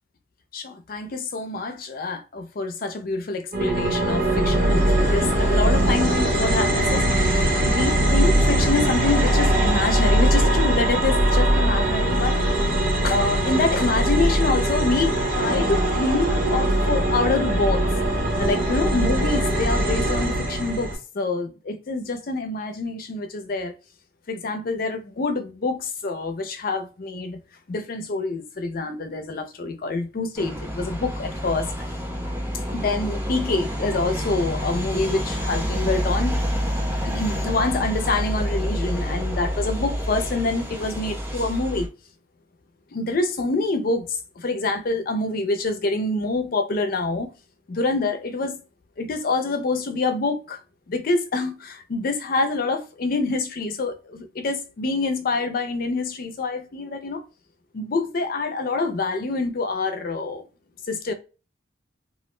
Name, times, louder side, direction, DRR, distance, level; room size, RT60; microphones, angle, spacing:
voice 1, 0.5-7.3 7.6-12.4 13.0-17.8 18.2-20.9 21.1-23.7 24.3-27.4 27.7-31.8 32.7-36.4 37.0-41.9 42.9-47.3 47.7-48.6 49.0-50.6 50.9-57.2 57.7-60.4 60.8-61.1, left 3 dB, 50° left, 0.4 m, -26 dB
sound 1, 3.5-20.9, right 1 dB, 45° right, 0.9 m, -21 dB
sound 2, 30.4-41.9, equal, 10° right, 0.7 m, -28 dB
2.4 x 2.1 x 3.0 m
head